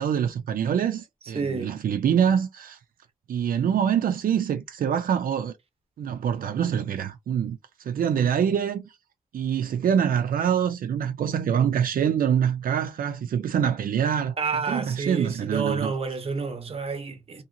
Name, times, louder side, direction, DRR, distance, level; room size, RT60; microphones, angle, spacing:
voice 1, 0.0-2.8 3.3-5.5 6.0-8.9 9.3-14.4 14.7-15.9, right 8 dB, 85° right, 0.4 m, -25 dB
voice 2, 1.3-1.8 14.4-17.4, right 4 dB, 45° right, 0.7 m, -29 dB
2.9 x 2.7 x 2.5 m
wide cardioid pair, 135°, 14 cm